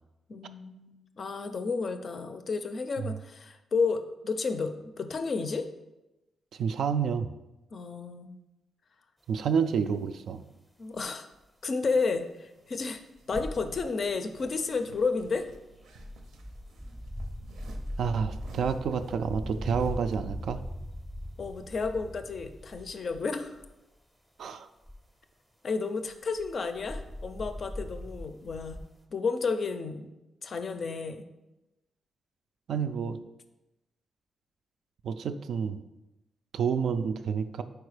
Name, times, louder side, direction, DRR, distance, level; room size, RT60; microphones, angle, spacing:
voice 1, 0.3-5.7 7.7-8.4 10.8-11.3 11.6-13.0 13.3-15.5 21.4-23.6 25.6-28.8 29.1-30.1 30.4-31.2, left 4 dB, 40° left, 8 dB, 0.4 m, -32 dB
voice 2, 6.5-7.3 9.3-10.4 18.0-20.6 24.4-24.7 32.7-33.2 35.0-35.8 36.5-37.6, right 6 dB, 60° right, 10 dB, 0.3 m, -29 dB
sound 1, 10.0-10.1 11.0-11.1 11.4-11.5 13.2-13.3 13.5-13.7 14.1-14.2 14.4-14.9 15.3-23.3 23.6-23.7 24.8-25.0 26.1-28.8, equal, ahead, 0.6 m, -40 dB
sound 2, 11.8-20.3 20.9-21.0 21.2-22.2 22.5-23.7, right 2 dB, 85° right, 0.7 m, -50 dB
4.7 x 4.4 x 4.8 m, 0.97 s
wide cardioid pair, 165°, 0 cm